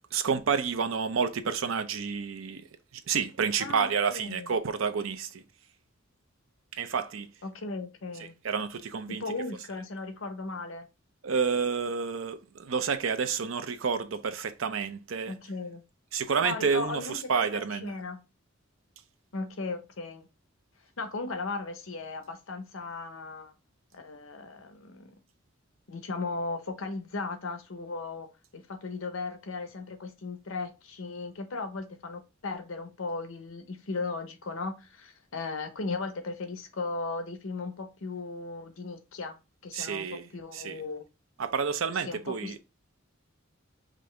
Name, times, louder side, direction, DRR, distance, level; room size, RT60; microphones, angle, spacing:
voice 1, 0.1-2.6 3.1-5.4 6.7-7.3 8.2-9.2 11.2-15.4 16.1-18.0 39.7-40.8 41.4-42.6, right 6 dB, 80° right, 0.6 m, -29 dB
voice 2, 3.6-4.6 7.4-8.4 9.1-10.9 15.3-15.8 16.4-18.2 19.3-20.3 21.0-23.5 23.9-25.2 25.9-28.3 28.5-39.4 39.6-41.1 42.0-42.6, left 3 dB, 80° left, 0.8 m, -37 dB
5.2 x 2.6 x 3.2 m
head